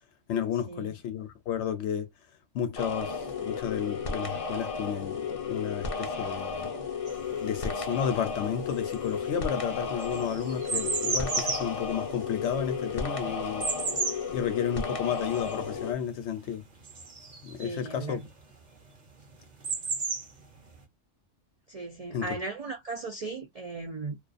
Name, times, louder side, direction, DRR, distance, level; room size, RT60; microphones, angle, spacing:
voice 1, 0.3-2.1 2.5-6.7 7.4-13.7 14.3-16.6 17.4-18.2 22.1-22.4, left 8 dB, 70° left, 0.9 m, -32 dB
sound 1, 2.8-15.9, left 5 dB, 40° left, 0.5 m, -33 dB
sound 2, 7.1-8.2 8.5-17.8 18.9-19.0 19.2-20.8, right 4 dB, 45° right, 0.7 m, -33 dB
voice 2, 17.6-18.2 21.7-24.2, right 3 dB, 75° right, 0.3 m, -37 dB
2.4 x 2.3 x 2.4 m
omnidirectional pair, 1.3 m